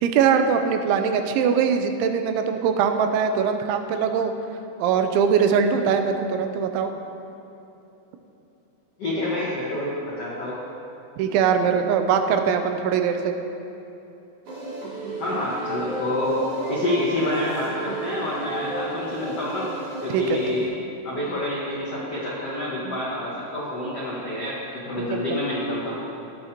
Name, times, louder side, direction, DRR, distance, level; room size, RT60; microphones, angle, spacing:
voice 1, 0.0-4.3 4.8-6.9 11.2-13.4 20.1-20.4 25.0-25.4, right 7 dB, 85° right, 6 dB, 3.0 m, -22 dB
voice 2, 9.0-10.6 15.2-19.7 20.0-20.7 21.0-25.9, left 1 dB, 80° left, -7 dB, 1.3 m, -27 dB
sound 1, 14.5-20.7, right 1 dB, 55° right, 3.8 m, -33 dB
20.0 x 8.4 x 2.9 m, 2.9 s
omnidirectional pair, 5.3 m